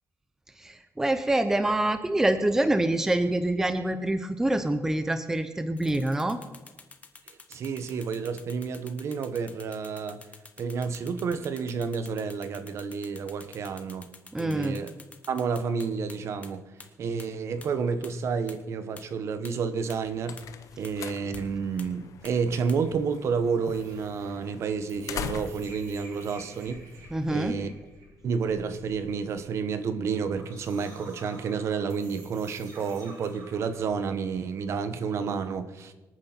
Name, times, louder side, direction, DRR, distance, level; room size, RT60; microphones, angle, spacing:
voice 1, 0.6-6.4 14.3-14.8 27.1-27.5, right 1 dB, 10° right, 9 dB, 0.6 m, -26 dB
sound 1, 5.8-16.1 16.4-16.5 16.8-16.9 17.2-17.3 17.6-17.7 18.0-18.1 18.5-18.6 19.0-19.1 19.4-19.5 19.9-20.0 20.4-20.5 20.8-20.9 21.3-21.4 21.8-21.9 22.2-22.3 22.7-22.8, left 4 dB, 25° left, 1.2 m, -47 dB
voice 2, 7.3-10.2 10.6-14.1 14.4-14.9 15.3-16.6 17.0-20.4 20.8-26.8 27.3-27.7 28.2-35.9, right 5 dB, 55° right, 11 dB, 1.1 m, -30 dB
sound 2, 19.8-27.2, left 8 dB, 70° left, 0.9 m, -42 dB
sound 3, 23.6-33.9, right 2 dB, 75° right, 6.7 m, -51 dB
25.0 x 9.2 x 4.4 m, 1.1 s
cardioid pair, 175°, 6 cm